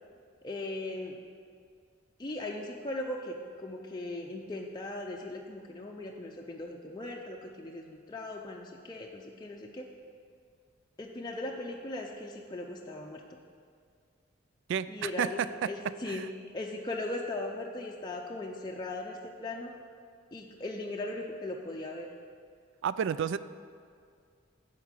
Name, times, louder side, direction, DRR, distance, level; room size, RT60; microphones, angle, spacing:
voice 1, 0.4-1.2 2.2-9.8 11.0-13.2 14.9-15.4 15.7-16.3 16.5-19.7 20.3-22.1, left 2 dB, 20° left, -1 dB, 0.5 m, -38 dB
voice 2, 14.7-15.7 16.1-16.3 22.8-23.4, right 7 dB, 65° right, 15 dB, 0.3 m, -31 dB
11.0 x 4.5 x 7.3 m, 2.2 s
head